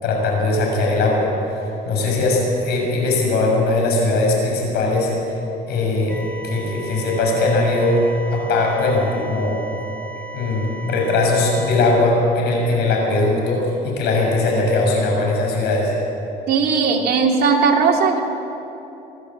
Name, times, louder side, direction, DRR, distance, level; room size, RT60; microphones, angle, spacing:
voice 1, 0.0-5.4 5.7-6.2 6.4-8.0 8.3-9.6 10.3-15.9, left 2 dB, 80° left, 0 dB, 6.4 m, -20 dB
sound 1, 6.1-12.0, right 3 dB, 5° left, 2.4 m, -36 dB
voice 2, 16.5-18.2, right 5 dB, 65° right, 1 dB, 2.8 m, -17 dB
24.5 x 12.0 x 8.7 m, 3.0 s
cardioid pair, 110°, 17 cm